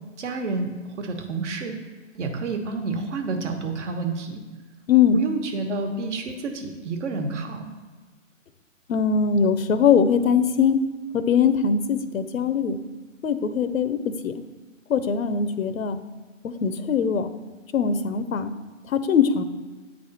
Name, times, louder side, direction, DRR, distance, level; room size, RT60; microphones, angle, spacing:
voice 1, 0.2-1.8 2.1-4.4 5.1-7.7, right 3 dB, 60° right, 5 dB, 1.1 m, -29 dB
voice 2, 4.9-5.2 8.9-10.8 11.1-12.8 13.2-14.3 14.9-16.0 16.4-17.3 17.7-18.5 18.9-19.4, left 6 dB, 85° left, 11 dB, 0.7 m, -21 dB
8.8 x 3.4 x 4.0 m, 1.3 s
hypercardioid pair, 145°, 39 cm